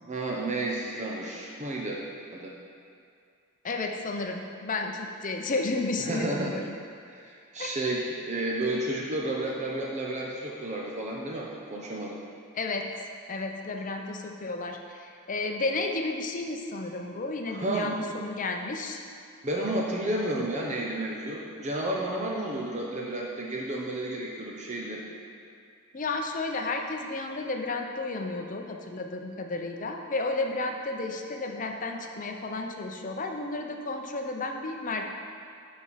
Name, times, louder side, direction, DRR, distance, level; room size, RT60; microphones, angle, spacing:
voice 1, 0.0-2.0 2.3-2.5 6.1-6.5 7.1-12.2 17.6-18.0 19.4-25.0, right 1 dB, 30° right, -2 dB, 0.7 m, -31 dB
voice 2, 3.6-6.6 7.6-7.8 12.5-12.8 13.3-19.0 25.9-35.1, left 3 dB, 35° left, 3 dB, 0.6 m, -32 dB
9.6 x 4.3 x 5.7 m, 2.3 s
head